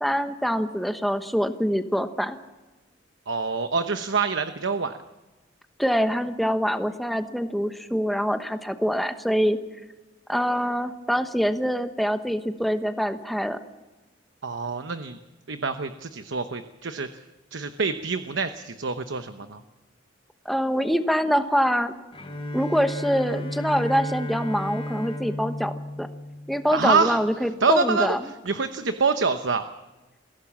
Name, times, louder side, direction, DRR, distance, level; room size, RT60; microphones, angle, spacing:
voice 1, 0.0-2.4 5.8-9.6 10.3-13.6 20.4-21.9 22.5-26.1 26.5-28.2, equal, ahead, 8 dB, 1.1 m, -25 dB
voice 2, 3.3-4.9 14.4-15.2 15.5-17.1 17.5-19.6 26.7-27.2 27.6-28.1 28.4-29.7, right 4 dB, 80° right, 8 dB, 1.0 m, -26 dB
Bowed string instrument, 22.1-27.1, left 1 dB, 30° left, 4.0 m, -33 dB
22.5 x 16.5 x 7.3 m, 1.1 s
head